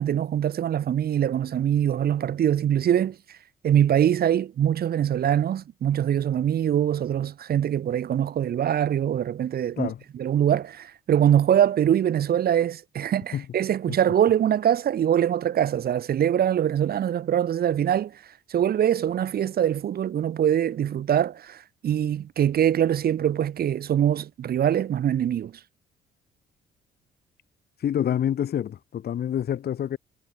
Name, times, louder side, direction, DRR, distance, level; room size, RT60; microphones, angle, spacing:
voice 1, 0.0-3.4 3.6-18.2 18.5-25.5, right 10 dB, 55° right, 1.3 m, -23 dB
voice 2, 27.8-30.0, left 10 dB, 55° left, 3.0 m, -27 dB
hypercardioid pair, 50°, 19 cm